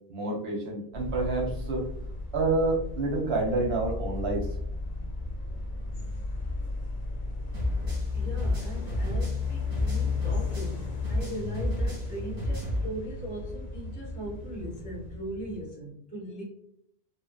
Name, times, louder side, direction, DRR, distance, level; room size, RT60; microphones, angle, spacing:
voice 1, 0.1-1.9 2.3-4.5, right 2 dB, 75° right, -1 dB, 0.9 m, -28 dB
sound 1, 0.9-15.7, left 4 dB, 55° left, 0.6 m, -34 dB
sound 2, 7.5-10.8 11.0-12.9, equal, 40° right, 1.6 m, -31 dB
voice 2, 8.1-16.4, right 1 dB, 10° left, -5 dB, 0.8 m, -39 dB
2.6 x 2.0 x 2.3 m, 0.67 s
omnidirectional pair, 1.1 m